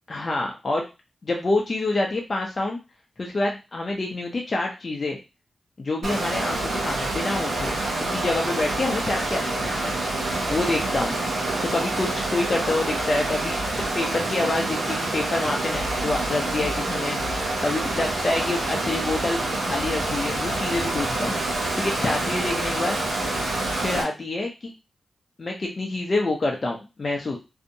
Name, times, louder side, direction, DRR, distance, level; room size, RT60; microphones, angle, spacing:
voice 1, 0.1-0.8 1.2-2.8 3.2-5.2 5.8-7.7 8.0-10.0 10.5-11.2 11.7-21.4 21.8-23.0 23.8-24.7 25.4-27.4, left 2 dB, 50° left, 0 dB, 0.6 m, -27 dB
Water, 6.0-24.0, right 2 dB, 85° right, 1.0 m, -27 dB
2.7 x 2.1 x 2.6 m, 0.28 s
cardioid pair, 45°, 0 cm